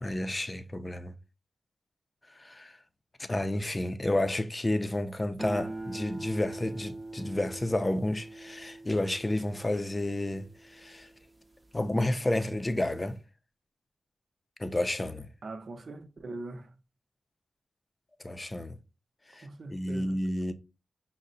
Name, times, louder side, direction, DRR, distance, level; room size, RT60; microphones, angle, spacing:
voice 1, 0.0-1.1 2.4-2.8 3.2-11.1 11.7-13.2 14.6-15.3 18.2-18.8 19.3-20.5, left 1 dB, 30° left, 0.5 m, -31 dB
sound 1, 5.4-11.9 12.4-12.9, right 2 dB, 25° right, 0.6 m, -43 dB
voice 2, 15.4-16.7 19.4-20.2, right 2 dB, 65° right, 0.6 m, -42 dB
5.3 x 2.1 x 3.8 m
cardioid pair, 45°, 0 cm